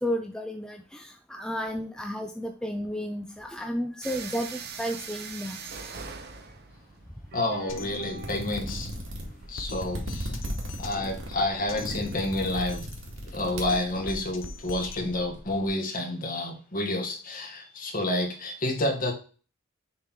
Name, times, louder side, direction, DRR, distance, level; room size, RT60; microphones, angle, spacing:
voice 1, 0.0-5.6, equal, 5° left, 4 dB, 0.4 m, -32 dB
sound 1, 4.0-9.5, right 5 dB, 55° right, 0.8 m, -42 dB
voice 2, 7.3-8.9 9.5-10.4 10.8-12.9 13.2-19.1, left 1 dB, 45° left, 2 dB, 1.6 m, -29 dB
Drum kit, 7.7-15.7, left 2 dB, 70° left, 0.8 m, -41 dB
sound 2, 8.2-14.4, equal, 85° right, 2.0 m, -36 dB
6.5 x 3.8 x 4.4 m, 0.38 s
head